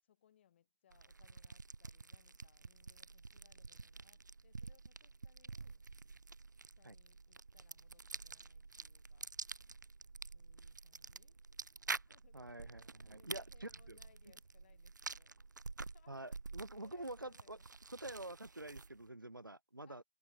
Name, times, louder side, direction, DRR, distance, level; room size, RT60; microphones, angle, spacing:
voice 1, 0.0-5.8 6.6-9.3 10.3-11.4 11.9-12.8 13.2-15.4 15.9-16.4 16.7-17.7 19.8-20.0, left 10 dB, 35° left, 7.4 m, -71 dB
sound 1, 0.9-19.1, right 4 dB, 65° right, 1.3 m, -49 dB
voice 2, 12.3-14.0 16.1-17.6 18.0-20.0, right 1 dB, 85° right, 1.7 m, -47 dB
figure-of-eight pair, 145°, 11 cm